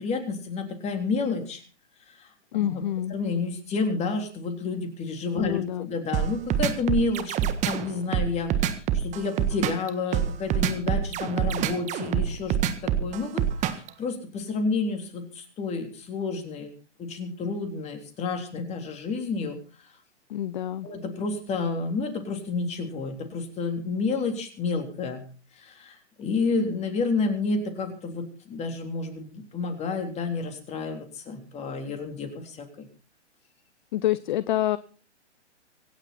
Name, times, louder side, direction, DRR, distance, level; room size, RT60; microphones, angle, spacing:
voice 1, 0.0-1.6 2.1-2.8 3.1-16.7 17.0-19.6 20.8-25.2 25.6-32.9, left 4 dB, 20° left, 5 dB, 3.6 m, -30 dB
voice 2, 2.5-3.1 5.3-5.9 20.3-20.9 33.9-34.8, left 12 dB, 40° left, 16 dB, 0.8 m, -27 dB
sound 1, 6.1-13.9, right 10 dB, 20° right, 1.6 m, -25 dB
25.5 x 9.1 x 4.3 m, 0.38 s
hypercardioid pair, 130°, 35 cm